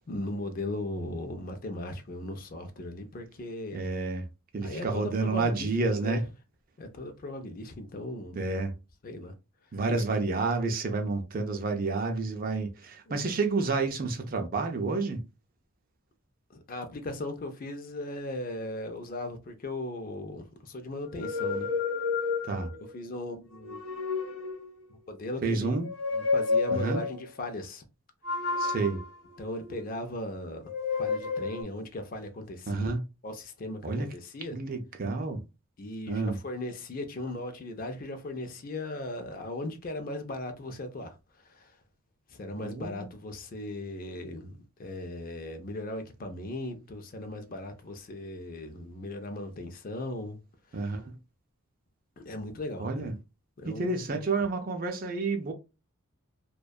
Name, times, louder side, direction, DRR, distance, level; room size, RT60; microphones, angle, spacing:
voice 1, 0.1-3.9 4.6-5.7 6.0-6.2 6.8-8.5 9.0-9.3 10.0-10.1 16.5-21.7 22.9-23.8 25.1-25.8 26.1-27.8 29.4-30.7 31.0-32.9 33.2-34.6 35.8-41.2 41.5-41.7 42.3-50.4 52.2-53.1 53.6-54.2, left 1 dB, 40° left, 0.4 m, -38 dB
voice 2, 3.7-4.3 4.5-6.2 8.3-8.7 9.7-15.2 22.4-22.7 25.4-25.9 26.7-27.0 28.6-29.0 32.7-33.0 33.8-34.1 34.5-35.4 36.1-36.4 42.6-43.1 50.7-51.2 52.8-53.2 53.6-55.5, right 3 dB, 40° right, 0.4 m, -30 dB
sound 1, 21.1-22.9 23.5-24.8 25.8-27.2 28.2-30.1 30.6-31.6, left 4 dB, 55° left, 0.9 m, -31 dB
2.6 x 2.2 x 2.2 m
head